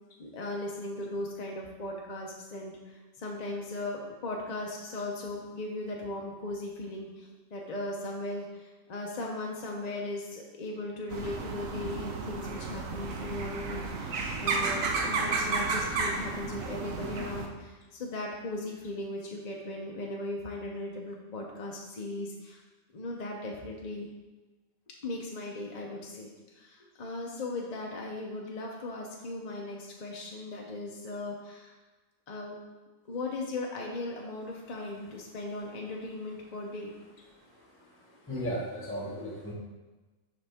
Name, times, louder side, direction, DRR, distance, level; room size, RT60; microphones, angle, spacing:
voice 1, 0.2-22.6 22.9-24.1 25.0-26.3 26.6-31.8 32.3-32.6 33.1-36.9, left 2 dB, 45° left, -1 dB, 0.6 m, -38 dB
sound 1, 11.1-17.5, right 3 dB, 75° right, 1.1 m, -32 dB
voice 2, 38.1-39.5, equal, 10° left, -4 dB, 1.4 m, -35 dB
6.8 x 5.1 x 3.5 m, 1.2 s
omnidirectional pair, 1.4 m